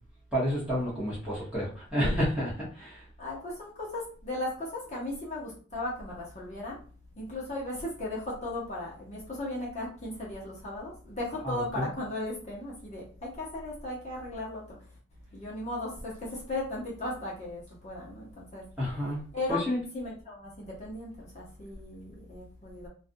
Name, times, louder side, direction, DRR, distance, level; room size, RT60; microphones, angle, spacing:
voice 1, 0.3-3.0 11.4-11.9 18.8-19.2 19.5-19.8, equal, 5° right, -8 dB, 1.0 m, -30 dB
voice 2, 3.2-6.8 7.2-14.8 15.3-18.6 19.3-19.6 19.9-22.9, left 2 dB, 30° left, -5 dB, 0.8 m, -36 dB
2.5 x 2.3 x 2.6 m, 0.40 s
head